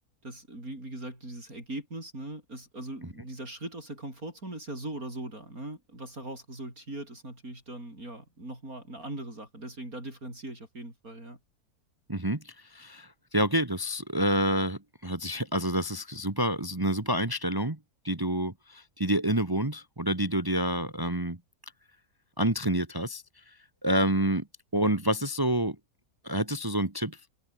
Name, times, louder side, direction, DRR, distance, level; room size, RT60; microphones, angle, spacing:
voice 1, 0.2-11.4, right 1 dB, 65° right, 8.6 m, -40 dB
voice 2, 12.1-17.8 18.0-21.4 22.4-23.2 23.8-24.5 24.7-25.8 26.2-27.2, right 1 dB, 15° right, 1.6 m, -28 dB
omnidirectional pair, 1.6 m